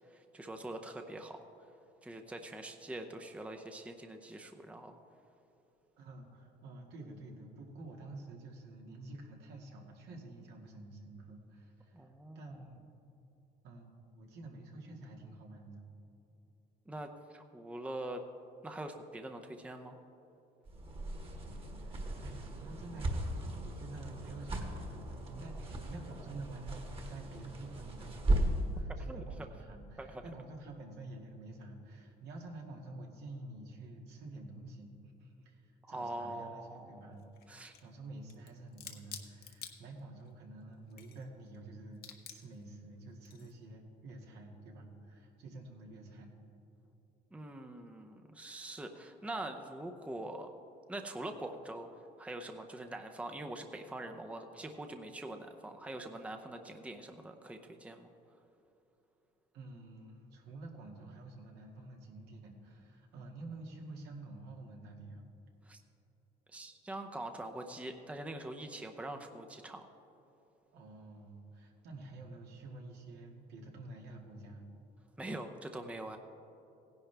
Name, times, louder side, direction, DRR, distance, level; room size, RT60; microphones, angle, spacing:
voice 1, 0.3-1.4 2.0-5.0 11.9-12.5 16.9-18.2 18.6-20.0 29.1-29.2 30.0-30.2 35.8-37.1 37.5-37.7 47.3-50.5 50.9-51.9 52.2-58.1 65.7-65.8 66.5-69.8 75.2-76.2, right 1 dB, 5° right, 5 dB, 0.7 m, -43 dB
voice 2, 6.0-12.1 12.3-12.8 13.6-15.9 21.8-37.2 37.8-46.3 59.5-65.2 70.7-74.7, right 2 dB, 80° right, 0 dB, 2.1 m, -49 dB
sound 1, 20.7-28.7, right 1 dB, 35° right, 1.6 m, -37 dB
sound 2, 37.1-37.9 38.3-40.3 40.7-41.6 41.9-42.6 43.2-43.6, left 9 dB, 65° left, 1.2 m, -50 dB
17.0 x 10.5 x 3.4 m, 3.0 s
cardioid pair, 110°, 17 cm